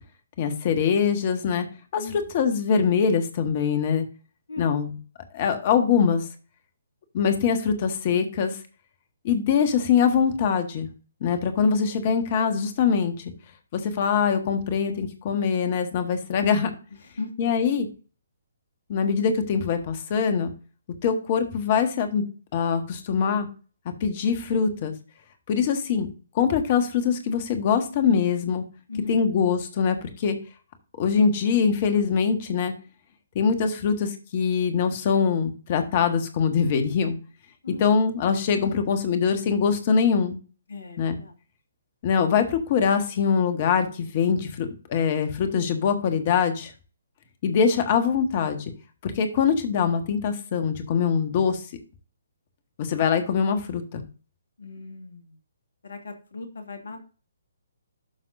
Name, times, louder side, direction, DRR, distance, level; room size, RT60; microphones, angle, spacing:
voice 1, 0.4-1.6 1.9-4.0 4.6-5.0 5.3-6.2 7.1-8.5 9.2-10.9 11.2-13.1 13.7-16.7 17.4-17.9 18.9-20.5 21.0-22.2 22.5-23.5 24.0-24.9 25.5-26.1 26.3-28.6 29.1-30.4 31.0-32.7 33.3-37.2 37.7-40.4 41.0-41.2 42.0-46.7 47.4-48.6 49.0-51.6 52.8-54.0, left 6 dB, 35° left, 7 dB, 1.6 m, -23 dB
voice 2, 28.9-29.3 37.6-37.9 40.7-41.3 54.6-55.3 55.8-57.0, left 3 dB, 60° left, 5 dB, 2.2 m, -38 dB
12.0 x 5.8 x 2.7 m, 0.36 s
figure-of-eight pair, 130°, 0 cm